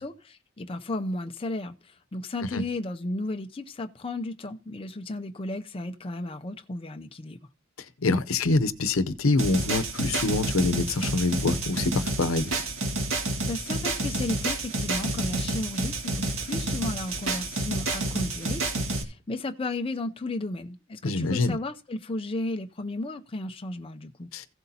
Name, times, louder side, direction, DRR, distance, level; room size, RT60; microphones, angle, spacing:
voice 1, 0.0-7.5 13.5-24.3, left 2 dB, 25° left, 0.5 m, -34 dB
voice 2, 8.0-12.5 21.0-21.6 24.3-24.5, left 3 dB, 85° left, 0.7 m, -25 dB
sound 1, 9.4-19.0, right 2 dB, 80° right, 2.0 m, -29 dB
15.5 x 7.9 x 2.8 m
head